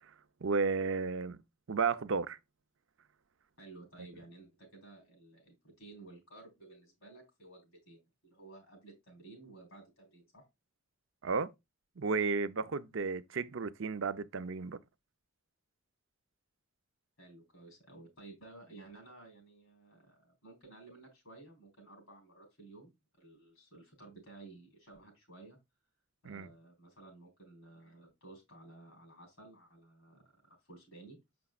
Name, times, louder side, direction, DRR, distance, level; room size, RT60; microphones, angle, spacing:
voice 1, 0.4-1.4 1.7-2.4 11.2-11.5 12.0-14.8 26.2-26.5, right 4 dB, 60° right, 0.5 m, -33 dB
voice 2, 3.6-10.5 17.2-25.6 26.2-31.2, right 2 dB, 65° left, 4.0 m, -55 dB
6.9 x 6.0 x 2.4 m
head